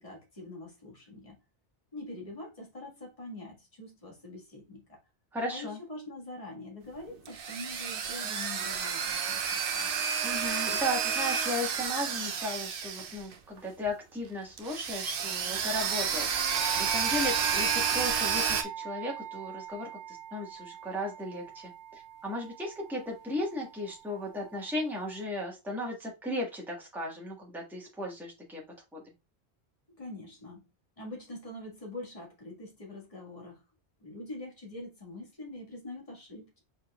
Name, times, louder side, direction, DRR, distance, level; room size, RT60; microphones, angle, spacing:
voice 1, 0.0-1.4 1.9-5.0 5.5-10.0 30.0-30.7 31.0-33.6 34.0-36.6, left 2 dB, 30° left, 1.8 m, -44 dB
voice 2, 5.3-5.8 10.2-16.5 16.7-28.6 28.9-29.0, left 1 dB, ahead, 1.4 m, -36 dB
sound 1, 7.0-13.6 13.9-14.0 14.6-18.6, right 7 dB, 60° right, 0.8 m, -30 dB
sound 2, 16.5-25.2, right 10 dB, 80° right, 0.9 m, -41 dB
5.0 x 4.3 x 2.3 m
omnidirectional pair, 1.1 m